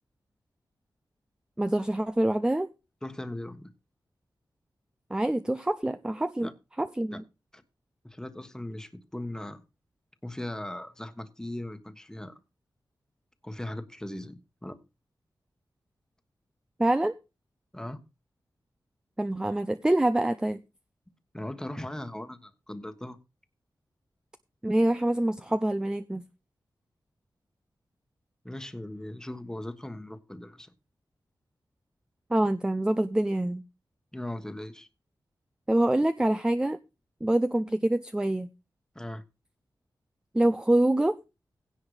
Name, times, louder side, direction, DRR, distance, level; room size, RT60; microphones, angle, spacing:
voice 1, 1.6-2.7 5.1-6.5 6.8-7.2 16.8-17.1 19.2-20.6 24.6-26.2 32.3-33.6 35.7-36.8 37.2-38.5 40.3-41.2, right 1 dB, 10° right, 0.5 m, -25 dB
voice 2, 3.0-3.7 6.4-6.5 7.1-7.2 7.5-7.6 8.0-9.6 10.2-12.4 13.4-14.8 17.7-18.0 21.3-23.2 28.4-30.7 34.1-34.9 38.9-39.2, left 1 dB, 10° left, 1.3 m, -38 dB
16.5 x 5.7 x 4.9 m
wide cardioid pair, 155°, 8 cm